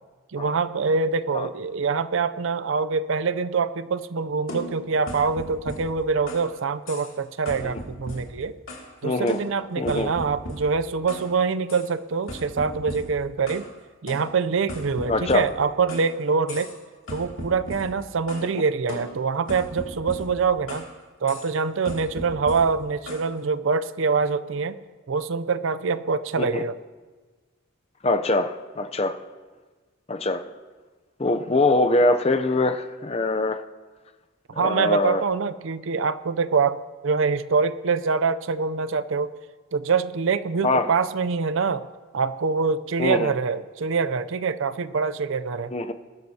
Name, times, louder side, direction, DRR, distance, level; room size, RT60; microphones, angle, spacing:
voice 1, 0.3-8.5 9.0-13.7 14.0-16.7 17.1-20.9 21.2-24.8 25.1-26.7 34.6-39.3 39.7-41.8 42.1-45.7, right 5 dB, 65° right, 13 dB, 0.5 m, -25 dB
sound 1, 4.5-6.5 6.9-7.2 7.5-8.9 9.3-11.3 11.7-11.9 12.3-13.7 14.1-16.1 16.5-16.8 17.1-18.5 18.9-20.9 21.3-21.5 21.8-23.3, equal, 70° left, 2.6 m, -38 dB
voice 2, 9.0-9.4 9.8-10.1 15.1-15.5 26.4-26.6 28.0-29.2 30.1-30.5 31.2-33.6 34.5-35.2 40.6-40.9 43.0-43.3 45.7-45.9, left 2 dB, 30° left, 8 dB, 0.6 m, -23 dB
20.5 x 12.5 x 2.8 m, 1.3 s
head